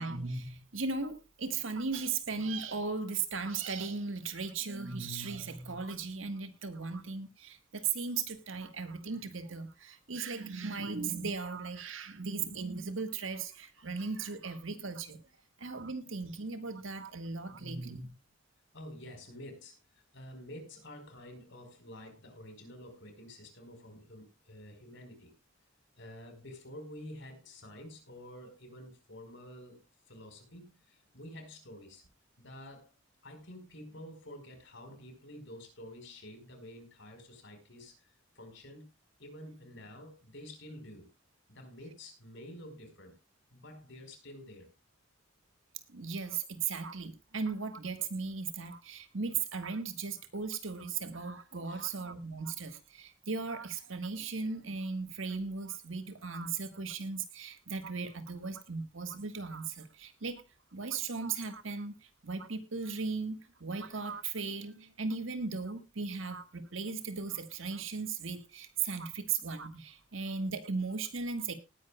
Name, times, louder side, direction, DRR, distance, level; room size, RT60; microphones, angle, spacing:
voice 1, 0.0-15.2 15.6-18.2 45.9-60.4 60.7-62.0 62.2-71.5, right 4 dB, 75° right, 1.7 m, -37 dB
voice 2, 18.7-25.3 25.9-29.8 30.1-32.0 32.4-32.9 33.2-38.9 39.2-41.1 41.5-43.2 43.5-44.7 51.6-51.9, left 1 dB, 60° left, 4.7 m, -49 dB
19.0 x 10.0 x 2.3 m
head